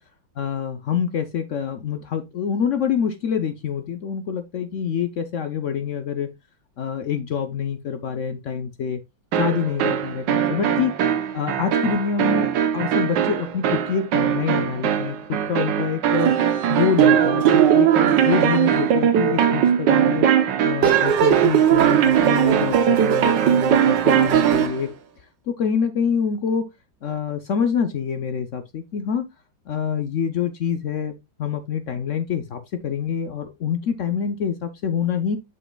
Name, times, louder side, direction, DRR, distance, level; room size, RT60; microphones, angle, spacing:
voice 1, 0.4-6.3 6.8-9.0 9.3-10.9 11.3-16.4 16.7-20.3 20.6-24.9 25.5-26.7 27.0-29.3 29.7-35.4, left 7 dB, 70° left, 0.7 m, -26 dB
sound 1, 9.3-24.8, right 9 dB, 70° right, 1.5 m, -19 dB
7.5 x 6.6 x 2.3 m
omnidirectional pair, 2.2 m